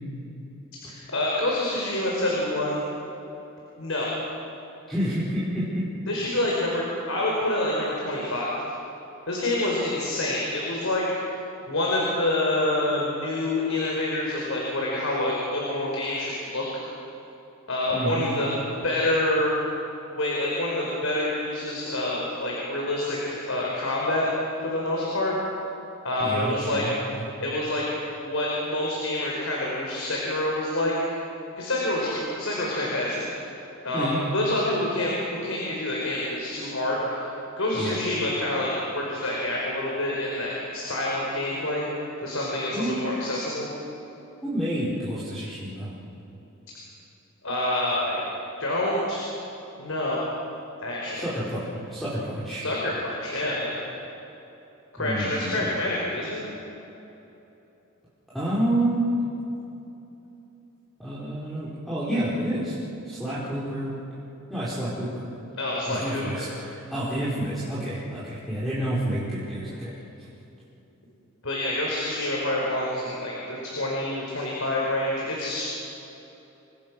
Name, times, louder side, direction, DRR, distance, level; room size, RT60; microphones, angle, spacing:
voice 1, 0.9-2.8 3.8-4.1 6.1-8.5 9.3-11.0 11.6-16.8 17.7-18.5 18.8-19.5 20.1-24.3 24.6-25.4 26.0-26.8 27.4-27.8 28.2-30.9 31.6-33.3 33.8-37.3 37.6-41.8 42.2-43.7 47.4-48.2 48.6-49.2 49.8-50.3 50.8-51.2 52.6-53.8 54.9-56.4 65.6-66.5 71.4-75.6, left 1 dB, 75° left, -3 dB, 4.9 m, -27 dB
voice 2, 4.9-5.8 17.9-18.3 26.2-27.0 33.9-34.2 37.7-37.9 42.7-43.0 44.4-45.9 51.2-52.6 55.0-55.6 58.3-59.2 61.0-62.7 63.0-63.9 64.5-65.2 65.9-69.9, right 1 dB, ahead, -11 dB, 4.9 m, -29 dB
28.5 x 24.0 x 6.4 m, 3.0 s
head